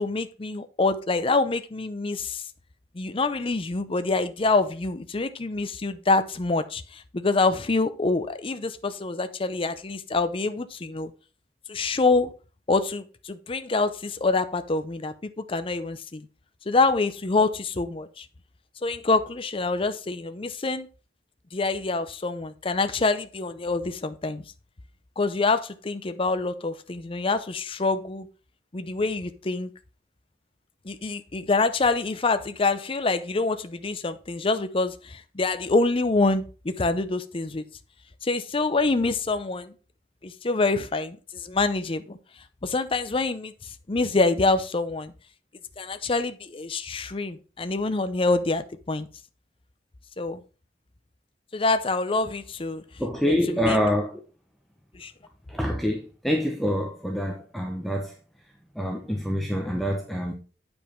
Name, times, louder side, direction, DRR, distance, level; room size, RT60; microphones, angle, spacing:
voice 1, 0.0-2.4 2.9-11.1 11.7-12.3 12.7-16.3 16.7-18.3 18.8-20.9 21.5-24.4 25.2-28.3 28.7-29.7 30.8-37.6 38.2-39.7 40.2-42.2 42.6-45.1 45.8-49.1 50.2-50.4 51.5-52.8 53.6-53.8 54.9-55.1, left 3 dB, 30° left, 0.6 m, -26 dB
voice 2, 53.0-54.2 55.5-58.1 58.7-60.3, equal, ahead, 0.9 m, -26 dB
8.9 x 5.3 x 4.4 m
head